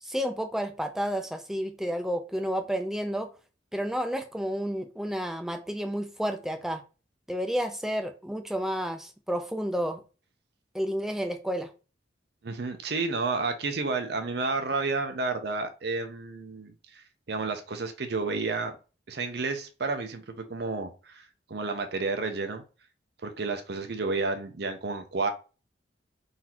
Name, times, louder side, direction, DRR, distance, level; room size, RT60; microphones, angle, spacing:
voice 1, 0.0-3.3 3.7-6.8 7.3-10.0 10.7-11.7, equal, ahead, 6 dB, 0.4 m, -31 dB
voice 2, 12.4-18.8 19.1-22.6 23.2-25.3, right 3 dB, 55° right, 7 dB, 0.6 m, -31 dB
4.0 x 2.7 x 4.3 m, 0.33 s
head